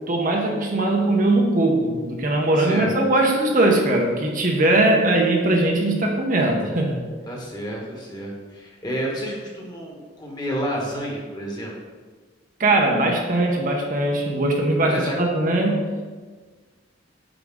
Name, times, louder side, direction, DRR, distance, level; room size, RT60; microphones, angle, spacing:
voice 1, 0.1-7.0 12.6-15.8, right 2 dB, 45° right, 1 dB, 0.9 m, -20 dB
voice 2, 2.6-2.9 7.3-11.7 14.8-15.1, equal, 20° left, -2 dB, 1.4 m, -30 dB
8.9 x 4.7 x 3.7 m, 1.4 s
head